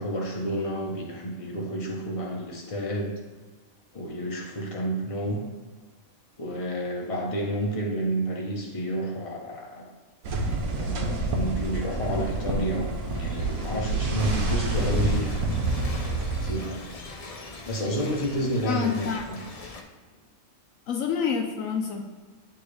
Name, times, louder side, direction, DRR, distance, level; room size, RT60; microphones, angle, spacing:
voice 1, 0.0-3.1 3.9-5.4 6.4-9.9 10.7-16.0 16.4-16.8 17.7-19.4, right 1 dB, 25° left, -1 dB, 0.9 m, -30 dB
sound 1, 10.2-16.5, right 2 dB, 80° right, 1.4 m, -27 dB
sound 2, 12.1-19.8, left 3 dB, 45° left, 0.4 m, -43 dB
voice 2, 18.7-19.3 20.9-22.0, left 7 dB, 70° left, 3 dB, 1.0 m, -27 dB
10.0 x 3.4 x 3.3 m, 1.4 s
omnidirectional pair, 1.5 m